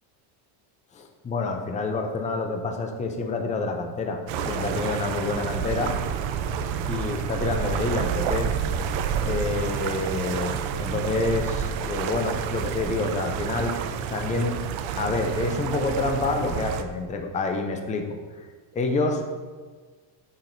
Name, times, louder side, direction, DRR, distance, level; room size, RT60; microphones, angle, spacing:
voice 1, 0.9-4.2 4.5-6.0 6.9-8.6 9.2-13.8 14.1-14.6 15.0-18.5 18.7-19.3, left 3 dB, 15° left, 4 dB, 0.4 m, -28 dB
sound 1, 4.3-16.8, right 7 dB, 70° right, 0.6 m, -29 dB
7.2 x 5.9 x 2.6 m, 1.4 s
cardioid pair, 135°, 48 cm